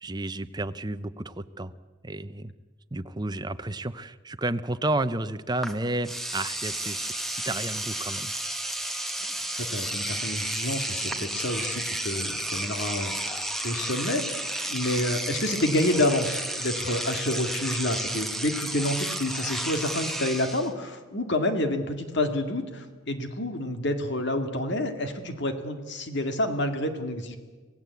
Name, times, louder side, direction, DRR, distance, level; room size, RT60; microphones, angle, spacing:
voice 1, 0.0-1.7 2.0-2.5 2.9-8.3, right 2 dB, 20° right, 11 dB, 0.8 m, -31 dB
Engine / Domestic sounds home sounds, 5.6-5.7 6.0-20.7, right 1 dB, ahead, 1.7 m, -32 dB
voice 2, 9.7-14.4 14.7-27.4, left 1 dB, 55° left, 7 dB, 2.2 m, -28 dB
26.5 x 17.0 x 8.4 m, 1.4 s
head